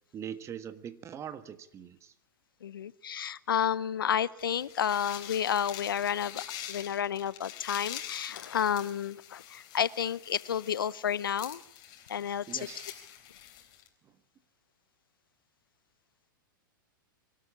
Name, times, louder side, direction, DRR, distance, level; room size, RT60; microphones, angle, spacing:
voice 1, 0.1-2.1 12.5-12.9 14.0-14.1, right 9 dB, 25° right, 13 dB, 1.5 m, -42 dB
voice 2, 2.6-11.6 12.1-12.7, left 9 dB, 80° left, 20 dB, 0.8 m, -31 dB
sound 1, 4.4-13.9, left 11 dB, 40° left, 3.8 m, -45 dB
24.5 x 13.0 x 8.7 m, 0.74 s
hypercardioid pair, 110°, 11 cm